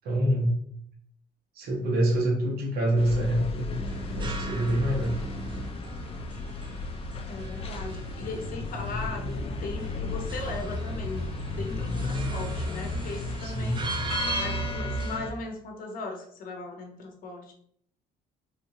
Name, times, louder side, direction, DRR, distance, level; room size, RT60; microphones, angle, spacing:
voice 1, 0.0-0.6 1.5-3.7 4.1-5.2 13.4-13.9, right 1 dB, 65° right, -1 dB, 1.0 m, -26 dB
sound 1, 3.0-15.3, left 2 dB, 35° left, 0.4 m, -33 dB
sound 2, 3.7-5.7, equal, 5° right, 1.2 m, -39 dB
sound 3, 3.9-15.2, right 4 dB, 30° right, 0.5 m, -40 dB
voice 2, 7.3-13.8 14.4-17.5, left 3 dB, 55° left, 2 dB, 0.9 m, -38 dB
3.4 x 2.6 x 2.8 m, 0.65 s
cardioid pair, 110°, 17 cm